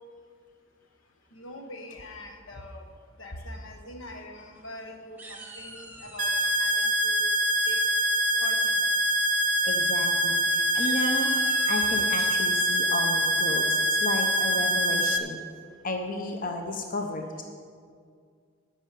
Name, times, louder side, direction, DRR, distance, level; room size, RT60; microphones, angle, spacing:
voice 1, 1.3-2.8 3.2-7.3 7.7-7.9 8.4-8.8 11.9-12.3, left 1 dB, 80° left, 4 dB, 1.1 m, -44 dB
sound 1, 4.2-4.8 5.2-6.6 8.0-8.4 8.8-9.1 9.3-9.5 9.8-10.0 10.6-12.2, right 2 dB, 10° right, 1.0 m, -46 dB
sound 2, 6.2-15.2, equal, 40° right, 0.6 m, -24 dB
voice 2, 9.6-15.4 15.8-17.4, left 2 dB, 45° left, 3 dB, 0.8 m, -33 dB
10.0 x 6.2 x 8.3 m, 2.1 s
head